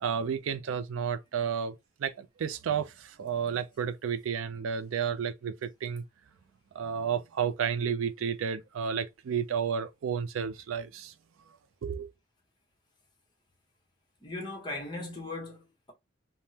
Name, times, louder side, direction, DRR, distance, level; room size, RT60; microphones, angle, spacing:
voice 1, 0.0-6.0 6.7-11.1 11.8-12.1, right 7 dB, 85° right, 0.4 m, -32 dB
voice 2, 14.2-15.9, left 2 dB, 25° left, 1.0 m, -38 dB
3.4 x 2.1 x 2.7 m
head